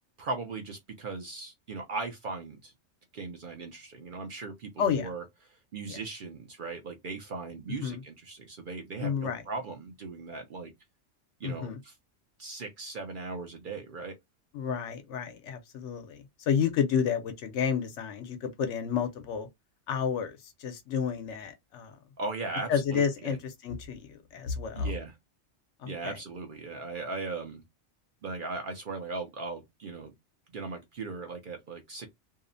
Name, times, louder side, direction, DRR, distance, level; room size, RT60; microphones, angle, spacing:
voice 1, 0.2-2.7 3.1-5.2 5.5-10.7 11.4-11.9 12.4-14.1 22.2-23.4 24.8-25.1 25.8-27.6 28.2-30.1 30.5-32.1, right 3 dB, 55° right, 0.6 m, -38 dB
voice 2, 4.8-5.1 5.9-6.0 7.8-8.0 9.0-9.4 11.4-11.8 14.5-19.5 19.9-21.9 22.7-24.9 25.8-26.2, left 7 dB, 75° left, 0.9 m, -31 dB
2.7 x 2.0 x 2.5 m
omnidirectional pair, 1.2 m